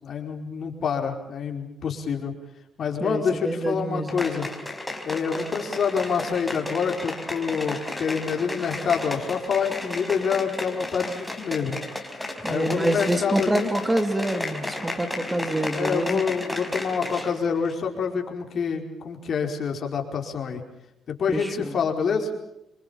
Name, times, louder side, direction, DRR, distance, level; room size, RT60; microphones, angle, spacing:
voice 1, 0.0-2.3 2.8-4.5 5.0-11.8 12.5-13.7 15.7-20.6 21.1-22.3, left 6 dB, 55° left, 3 dB, 4.8 m, -27 dB
voice 2, 3.0-4.2 12.4-16.2 21.3-21.7, right 1 dB, 15° right, 7 dB, 2.9 m, -26 dB
sound 1, 4.1-17.4 17.7-17.8, left 2 dB, 5° left, 4.4 m, -33 dB
26.5 x 23.0 x 7.2 m, 0.83 s
cardioid pair, 90°, 0 cm